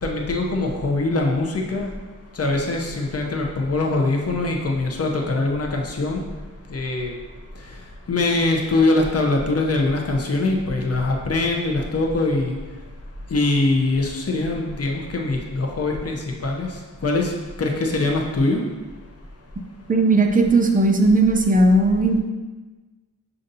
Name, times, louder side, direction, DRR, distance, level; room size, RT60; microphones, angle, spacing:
voice 1, 0.0-1.9 2.4-6.2 6.7-7.1 8.1-12.6 13.3-16.7 17.0-17.3 17.6-18.6, left 2 dB, 45° left, 0 dB, 0.6 m, -22 dB
voice 2, 19.9-22.2, right 2 dB, 25° right, 3 dB, 0.4 m, -17 dB
6.6 x 2.5 x 2.6 m, 1.3 s
wide cardioid pair, 100°, 34 cm